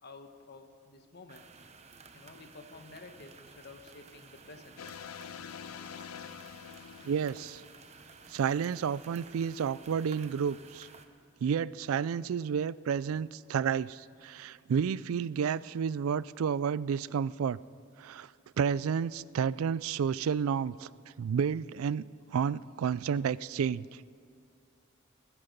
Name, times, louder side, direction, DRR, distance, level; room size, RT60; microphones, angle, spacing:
voice 1, 0.0-1.4 2.1-5.0, left 3 dB, 50° left, 7 dB, 1.2 m, -51 dB
sound 1, 1.3-11.1, right 4 dB, 35° right, 0.9 m, -54 dB
sound 2, 4.8-8.2, left 8 dB, 85° left, 0.4 m, -46 dB
voice 2, 7.0-7.6 8.3-10.9 11.4-17.6 18.0-18.3 18.6-20.9 21.2-24.0, right 7 dB, 80° right, 20 dB, 0.3 m, -31 dB
21.5 x 9.7 x 5.3 m, 2.5 s
head